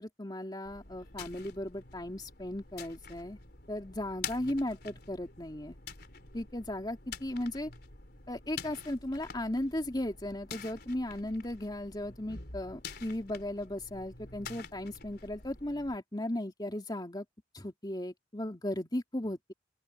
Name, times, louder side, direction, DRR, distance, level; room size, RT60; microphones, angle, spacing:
voice 1, 0.0-3.4 3.7-5.8 6.3-7.7 8.3-17.2 17.5-19.5, left 1 dB, 25° left, 2.8 m, -36 dB
sound 1, 0.7-16.0, left 5 dB, 60° left, 4.4 m, -47 dB
open air
head